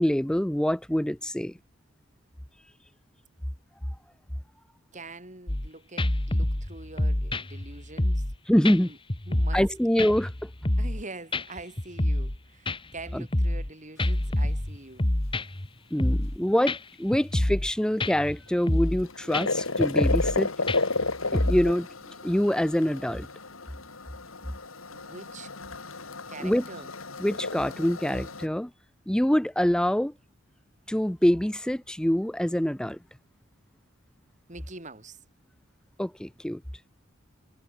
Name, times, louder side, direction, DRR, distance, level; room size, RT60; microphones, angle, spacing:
voice 1, 0.0-1.5 8.5-8.9 9.5-10.5 13.1-13.2 15.9-20.5 21.3-21.9 22.2-23.3 26.4-26.6 27.2-28.7 29.1-30.1 30.9-33.0 36.0-36.6, equal, 5° left, 0.5 m, -25 dB
voice 2, 4.9-8.3 8.7-9.0 9.3-9.6 10.8-15.1 24.9-25.5 26.0-26.9 34.5-35.2, right 2 dB, 35° right, 5.1 m, -44 dB
sound 1, 5.5-5.7 6.0-8.4 8.6-8.8 9.1-9.7 10.0-11.0 11.3-11.4 11.8-12.4 12.7-13.7 14.0-15.7 16.0-16.4 16.7-16.8 17.1-17.7 18.0-18.3 18.7-19.0 19.3-19.5 19.8-20.4 20.7-21.7, left 1 dB, 25° left, 1.5 m, -27 dB
sound 2, 18.7-28.5, left 3 dB, 80° left, 3.6 m, -32 dB
head